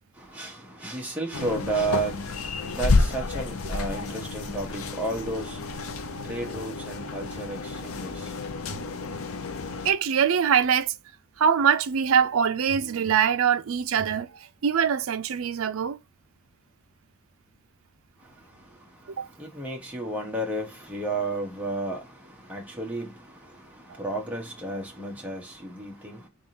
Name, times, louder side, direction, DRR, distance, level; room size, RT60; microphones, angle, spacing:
voice 1, 0.2-5.8 6.2-8.3 19.4-26.3, right 2 dB, 5° right, 1.2 m, -32 dB
sound 1, 1.3-9.9, left 3 dB, 70° left, 0.5 m, -30 dB
voice 2, 8.7-9.2 9.8-10.9 11.4-16.0 19.2-19.3, right 7 dB, 70° right, 0.4 m, -23 dB
3.7 x 3.6 x 2.7 m
head